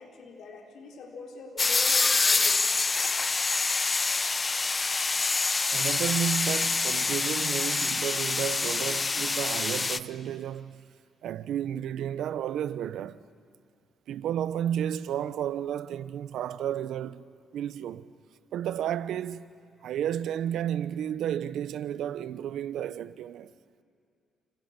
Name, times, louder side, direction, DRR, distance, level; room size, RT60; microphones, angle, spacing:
voice 1, 0.0-2.6, left 4 dB, 70° left, 4.4 m, -43 dB
sound 1, 1.6-10.0, left 3 dB, 30° left, 0.8 m, -26 dB
voice 2, 5.7-10.8 11.2-13.2 14.1-17.2 17.5-18.1 18.5-19.5 19.8-23.5, right 10 dB, 75° right, 0.7 m, -32 dB
28.5 x 27.5 x 6.9 m
cardioid pair, 90°, 0 cm